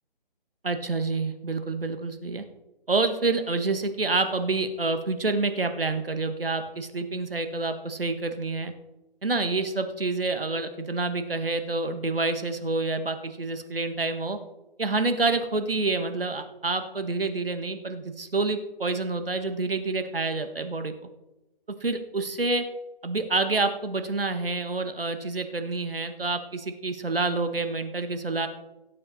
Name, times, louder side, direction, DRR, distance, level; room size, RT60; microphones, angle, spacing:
voice 1, 0.6-2.4 2.9-8.7 9.2-14.4 14.8-20.9 21.8-22.6 23.0-28.5, right 3 dB, 75° right, 8 dB, 1.5 m, -28 dB
17.0 x 7.4 x 4.2 m, 1.0 s
figure-of-eight pair, 145°, 29 cm